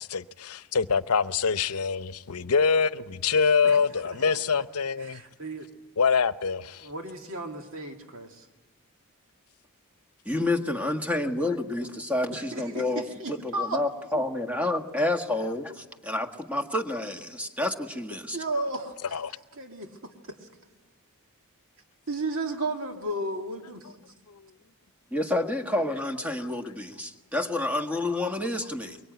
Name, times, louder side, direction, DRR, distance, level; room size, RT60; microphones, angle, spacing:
voice 1, 0.0-5.2 6.0-6.9 19.1-19.3 24.3-24.4, left 5 dB, 80° left, 0.8 m, -25 dB
voice 2, 5.0-5.7 6.8-8.5 12.3-13.8 18.3-19.2 19.5-20.4 22.1-23.9, right 2 dB, 65° right, 2.3 m, -34 dB
voice 3, 10.2-18.4 25.1-29.0, left 2 dB, 5° right, 1.5 m, -29 dB
24.0 x 23.0 x 9.3 m
head